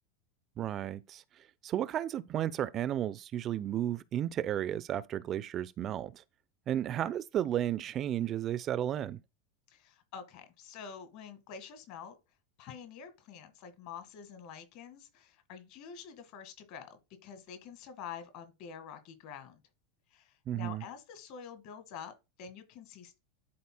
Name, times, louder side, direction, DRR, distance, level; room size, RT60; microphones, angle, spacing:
voice 1, 0.6-1.2 1.6-6.2 6.7-9.2 20.5-20.8, right 11 dB, 35° right, 0.4 m, -33 dB
voice 2, 9.7-12.2 12.6-19.6 20.1-22.1 22.4-23.2, left 7 dB, 55° left, 1.7 m, -47 dB
11.5 x 4.2 x 2.2 m
figure-of-eight pair, 85°, 0 cm